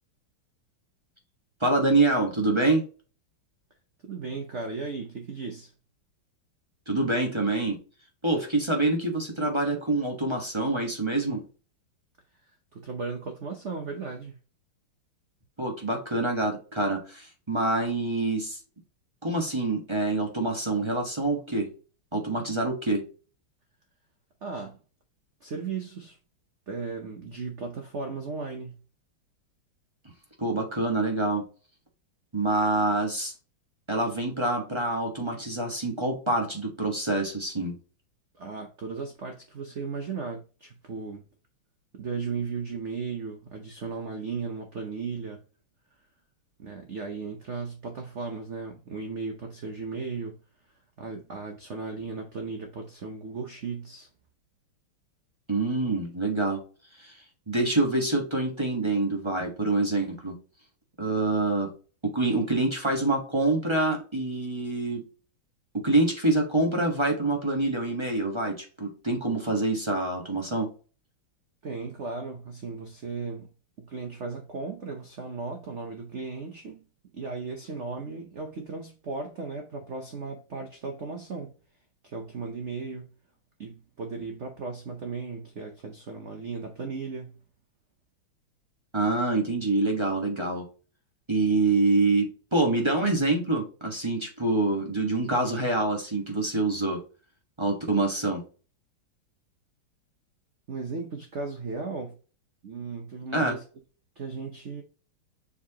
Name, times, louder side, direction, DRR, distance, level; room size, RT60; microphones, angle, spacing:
voice 1, 1.6-2.8 6.9-7.8 8.2-11.4 15.6-18.6 19.2-21.7 22.1-23.0 30.4-31.5 32.3-33.3 33.9-37.8 55.5-56.6 57.0-57.1 57.5-60.4 61.0-61.7 62.0-65.0 65.7-70.7 88.9-90.7 91.3-97.0 97.6-98.4 103.3-103.6, right 2 dB, 15° right, 1.1 m, -26 dB
voice 2, 4.0-5.7 12.5-14.4 24.4-24.8 25.4-26.2 26.7-28.8 38.3-41.2 41.9-45.4 46.6-50.4 51.0-54.1 71.6-73.5 73.8-76.8 77.1-81.5 82.0-83.1 83.6-87.4 100.7-102.2 102.6-103.6 104.2-104.8, right 4 dB, 55° right, 0.8 m, -36 dB
6.8 x 4.8 x 2.9 m
omnidirectional pair, 2.3 m